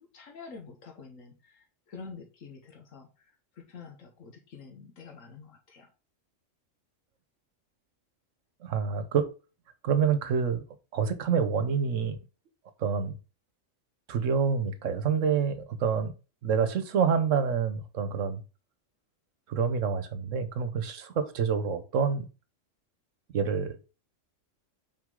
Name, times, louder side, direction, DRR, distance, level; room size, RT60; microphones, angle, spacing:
voice 1, 0.0-5.9, left 5 dB, 85° left, 1.4 m, -48 dB
voice 2, 8.6-9.3 9.8-10.6 10.9-12.2 12.8-13.1 14.1-16.1 16.4-18.4 19.5-22.3 23.3-23.8, right 6 dB, 75° right, 1.2 m, -27 dB
6.2 x 4.4 x 3.7 m
omnidirectional pair, 1.3 m